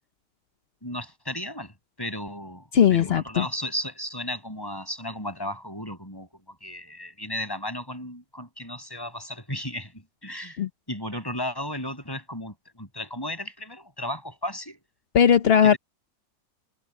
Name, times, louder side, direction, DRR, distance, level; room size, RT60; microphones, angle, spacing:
voice 1, 0.8-10.6 10.9-14.8 15.6-15.8, equal, 10° left, 7.8 m, -35 dB
voice 2, 2.7-3.5 10.6-10.7 15.1-15.7, left 8 dB, 50° left, 0.7 m, -18 dB
omnidirectional pair, 1.9 m